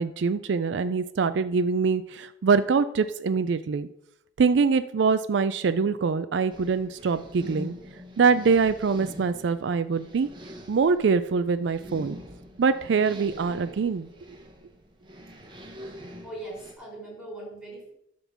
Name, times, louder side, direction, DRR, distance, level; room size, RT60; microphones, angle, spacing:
voice 1, 0.0-3.9 4.4-7.7 8.2-10.3 10.7-12.2 12.6-14.1, right 5 dB, 80° right, 12 dB, 0.4 m, -24 dB
sound 1, 6.5-16.7, equal, 25° right, 1.2 m, -44 dB
voice 2, 16.2-17.9, right 2 dB, 5° right, -3 dB, 4.2 m, -40 dB
11.0 x 3.8 x 7.1 m, 0.78 s
head